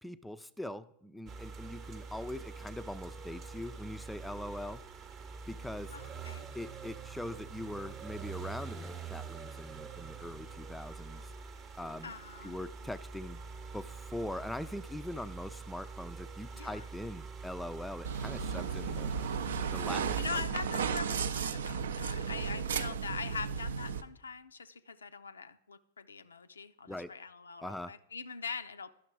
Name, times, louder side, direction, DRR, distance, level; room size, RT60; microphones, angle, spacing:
voice 1, 0.0-4.8 5.5-6.0 6.5-11.3 11.8-12.1 12.4-13.4 13.7-19.1 19.7-20.4 26.9-27.2 27.6-27.9, left 1 dB, 5° left, 13 dB, 0.3 m, -42 dB
sound 1, 1.3-20.2, right 5 dB, 35° right, 0.8 m, -45 dB
voice 2, 5.9-6.5 12.0-12.6 16.5-16.9 20.1-28.9, left 5 dB, 85° left, 11 dB, 0.4 m, -42 dB
sound 2, 18.0-24.0, right 6 dB, 70° right, 0.4 m, -34 dB
11.0 x 5.8 x 4.5 m, 0.79 s
hypercardioid pair, 100°, 0 cm